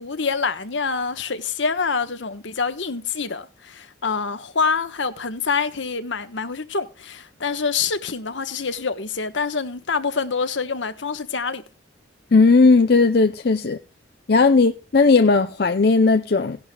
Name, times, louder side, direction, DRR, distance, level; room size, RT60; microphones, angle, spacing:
voice 1, 0.0-11.6, left 5 dB, 75° left, 1.2 m, -26 dB
voice 2, 12.3-13.8 14.3-16.6, left 4 dB, 55° left, 0.6 m, -16 dB
17.5 x 11.5 x 2.3 m
head